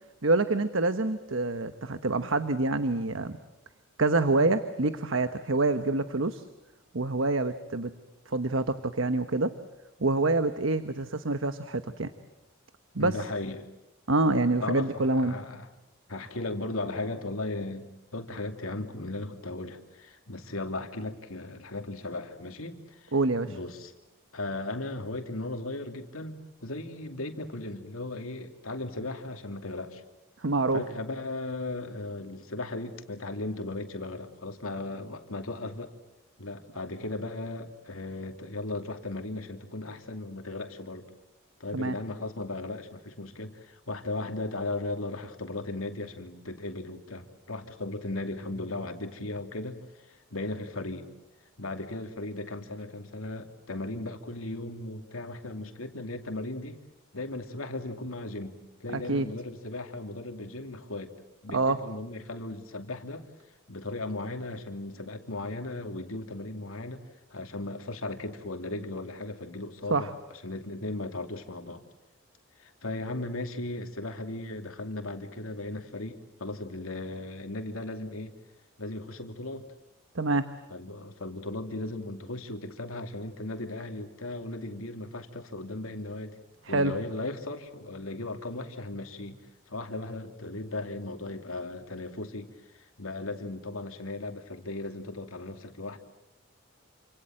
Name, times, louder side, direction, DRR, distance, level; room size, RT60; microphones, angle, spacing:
voice 1, 0.2-3.4 4.0-6.4 6.9-7.9 8.3-9.5 10.0-12.1 12.9-13.2 14.1-15.4 23.1-23.6 30.4-30.8 41.7-42.0 58.9-59.3 61.5-61.8 69.9-70.1 80.1-80.5 86.6-87.0, right 2 dB, 70° right, 10 dB, 1.1 m, -26 dB
voice 2, 13.0-13.7 14.6-15.7 16.1-23.1 23.4-23.9 24.3-30.0 30.7-35.9 36.4-41.1 41.6-51.1 51.6-56.8 57.1-61.1 61.4-63.3 63.7-67.0 67.3-70.1 70.4-71.8 72.6-78.3 78.8-79.6 80.7-86.4 86.7-89.4 89.7-92.5 92.7-96.0, left 2 dB, 85° left, 5 dB, 2.7 m, -37 dB
28.5 x 26.5 x 7.8 m, 0.91 s
head